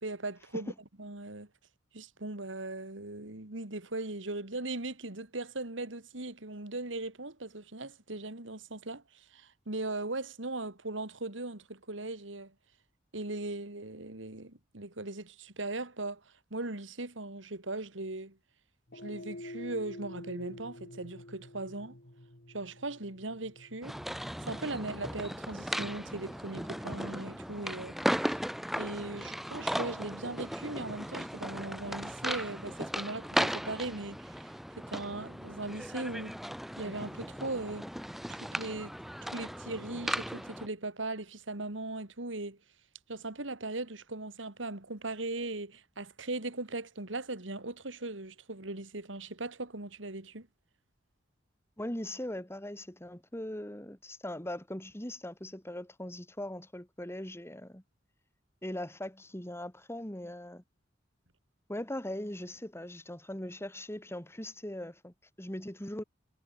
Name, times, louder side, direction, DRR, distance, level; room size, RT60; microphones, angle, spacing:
voice 1, 0.0-0.7 1.0-1.5 1.9-12.5 13.1-16.2 16.5-18.4 19.0-22.0 22.5-24.0 24.4-28.0 28.2-28.4 28.8-34.5 34.8-36.4 36.8-37.9 38.3-38.9 39.2-42.6 43.1-50.5, right 2 dB, 85° right, 2.7 m, -39 dB
sound 1, 18.9-27.4, left 1 dB, 60° left, 3.8 m, -49 dB
sound 2, 23.8-40.7, equal, ahead, 1.2 m, -37 dB
voice 2, 51.8-57.8 58.6-60.6 61.7-66.0, left 1 dB, 15° left, 3.4 m, -40 dB
head